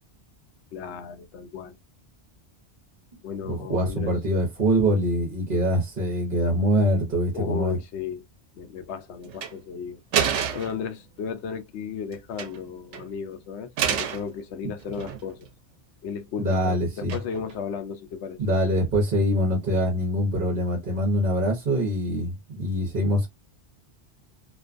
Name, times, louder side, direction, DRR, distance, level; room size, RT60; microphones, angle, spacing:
voice 1, 0.7-1.8 3.2-4.1 7.3-8.2 8.5-10.0 10.5-15.5 16.0-18.4, left 6 dB, 75° left, 0.8 m, -34 dB
voice 2, 3.4-7.8 16.4-17.2 18.4-23.3, equal, 50° right, 1.0 m, -24 dB
sound 1, 9.3-9.5 10.1-10.8 12.1-12.6 12.9-13.1 13.8-14.3 14.8-15.5 17.1-17.5, right 8 dB, 80° right, 0.9 m, -28 dB
2.5 x 2.2 x 2.4 m
omnidirectional pair, 1.2 m